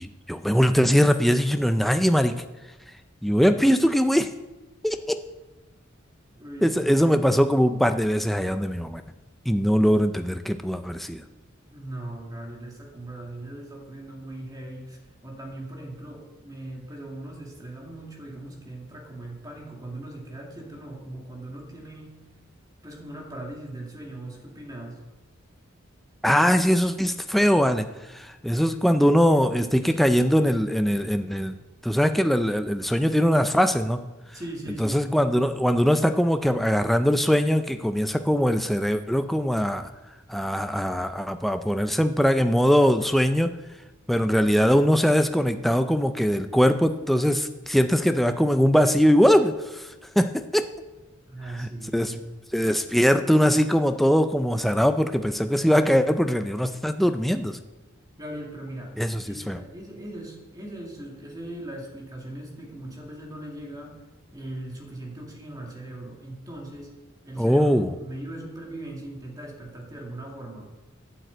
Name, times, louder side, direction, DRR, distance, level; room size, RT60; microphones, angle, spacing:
voice 1, 0.0-2.4 3.2-4.3 4.8-5.2 6.6-9.0 9.5-11.2 26.2-27.9 28.1-31.6 31.8-34.0 34.8-39.9 40.3-43.5 44.1-50.7 51.6-52.1 52.5-57.6 59.0-59.6 67.4-67.9, equal, ahead, 8 dB, 0.4 m, -21 dB
voice 2, 6.3-7.1 11.7-15.0 15.2-22.2 22.8-25.0 28.5-29.1 29.8-30.0 34.3-35.1 51.3-52.2 58.2-59.0 59.2-64.0 64.3-67.0 67.2-70.7, right 1 dB, 20° right, 0 dB, 2.2 m, -39 dB
9.2 x 7.7 x 8.0 m, 1.1 s
head